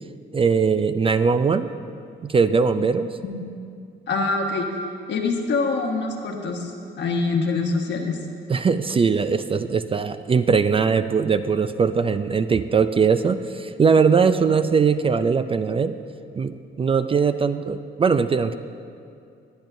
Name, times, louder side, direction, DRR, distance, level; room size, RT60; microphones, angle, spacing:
voice 1, 0.3-1.7 2.2-3.2 8.5-16.0 16.4-18.5, right 5 dB, 30° right, 10 dB, 0.4 m, -20 dB
voice 2, 4.1-4.7 5.1-6.7 7.0-8.2, left 3 dB, 65° left, 2 dB, 1.4 m, -24 dB
21.0 x 8.8 x 2.6 m, 2.5 s
cardioid pair, 90°, 20 cm